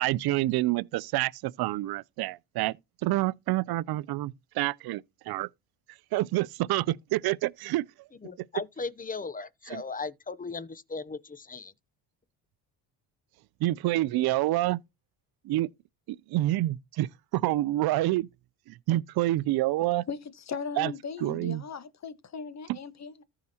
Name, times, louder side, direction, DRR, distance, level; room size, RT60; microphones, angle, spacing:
voice 1, 0.0-2.8 3.0-5.5 6.1-7.8 9.7-9.8 13.6-14.8 15.4-15.7 16.1-18.3 18.7-20.1 20.8-20.9 21.2-21.6 22.7-22.8, right 16 dB, 60° right, 0.6 m, -28 dB
voice 2, 8.2-11.7, left 4 dB, 20° left, 0.8 m, -37 dB
voice 3, 20.1-23.2, left 5 dB, 40° left, 1.4 m, -38 dB
14.5 x 4.9 x 2.9 m
supercardioid pair, 75°, 43 cm